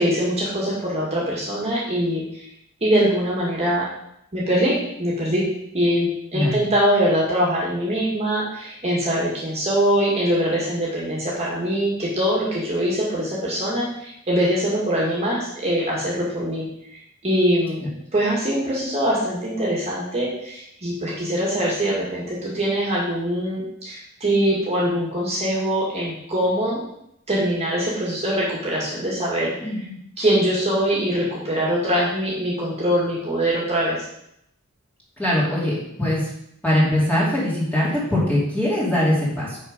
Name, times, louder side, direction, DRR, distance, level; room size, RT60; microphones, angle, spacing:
voice 1, 0.0-2.5 2.8-3.9 4.3-5.5 5.7-16.6 16.9-17.8 18.1-26.8 27.3-29.7 30.2-34.1, equal, 30° right, -5 dB, 2.0 m, -23 dB
voice 2, 29.6-30.0 35.2-36.3 36.6-39.6, left 1 dB, 5° left, -7 dB, 2.8 m, -22 dB
6.7 x 6.0 x 5.1 m, 0.77 s
head